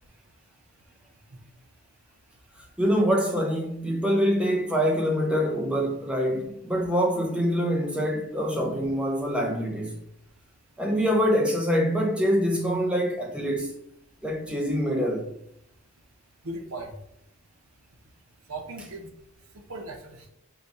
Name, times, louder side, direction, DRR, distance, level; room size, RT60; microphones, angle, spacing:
voice 1, 2.8-10.0 10.8-13.7 14.2-15.3, equal, 5° right, 0.5 m, -25 dB
voice 2, 16.4-16.9 18.5-19.1 19.5-20.3, right 2 dB, 85° right, 0.7 m, -38 dB
4.0 x 2.3 x 4.2 m
head